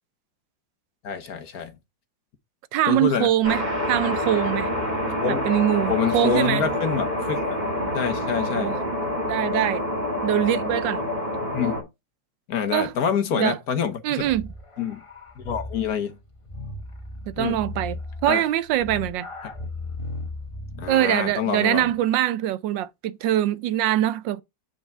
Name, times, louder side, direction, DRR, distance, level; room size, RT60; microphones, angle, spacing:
voice 1, 1.0-1.7 2.8-3.3 5.2-5.5 5.9-7.6 7.9-8.8 11.5-11.8 12.5-14.3 14.8-15.0 15.4-16.2 17.4-17.6 18.3-18.4 20.8-21.9, left 7 dB, 60° left, 1.4 m, -26 dB
voice 2, 2.7-4.7 5.2-6.7 8.3-8.8 9.3-9.9 10.2-11.0 12.7-12.9 13.3-13.6 14.0-14.5 17.3-18.0 18.2-19.3 20.9-24.4, right 12 dB, 80° right, 1.3 m, -23 dB
sound 1, 3.4-11.8, left 1 dB, 20° right, 3.2 m, -27 dB
sound 2, 14.2-21.1, left 2 dB, 20° left, 0.9 m, -37 dB
8.2 x 4.7 x 4.3 m
omnidirectional pair, 2.0 m